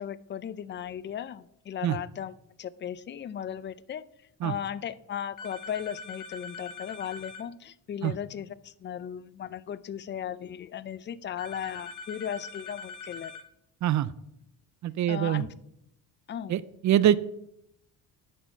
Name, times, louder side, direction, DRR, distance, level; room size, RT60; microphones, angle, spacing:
voice 1, 0.0-2.3 2.6-4.0 4.4-13.4 15.1-15.5 16.3-16.6, left 9 dB, 30° left, 18 dB, 0.4 m, -36 dB
sound 1, 5.4-7.4 11.4-13.4, left 4 dB, 55° left, 1.1 m, -42 dB
voice 2, 13.8-14.1 14.8-15.4 16.5-17.2, right 11 dB, 50° right, 17 dB, 0.4 m, -24 dB
10.0 x 4.4 x 5.7 m, 0.80 s
cardioid pair, 90°, 38 cm